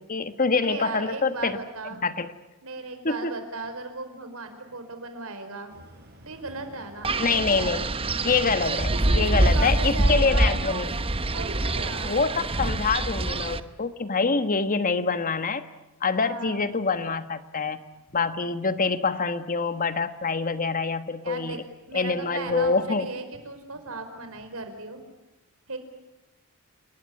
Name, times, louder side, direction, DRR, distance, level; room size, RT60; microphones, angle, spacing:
voice 1, 0.0-1.6 2.0-2.3 3.0-3.3 7.2-7.9 8.2-11.0 12.1-15.7 16.0-17.8 18.1-21.6 21.9-23.1, left 4 dB, 40° left, 11 dB, 1.3 m, -25 dB
voice 2, 0.6-2.0 2.6-5.7 6.2-7.5 8.2-8.3 8.9-10.5 11.3-12.3 16.1-16.6 21.2-21.6 21.9-25.0 25.7-25.8, right 3 dB, 80° right, 7 dB, 4.9 m, -36 dB
sound 1, 5.7-12.0, right 1 dB, 50° right, 5.6 m, -44 dB
Wind, 7.0-13.6, right 2 dB, 25° right, 1.0 m, -25 dB
30.0 x 20.0 x 9.7 m, 1.0 s
head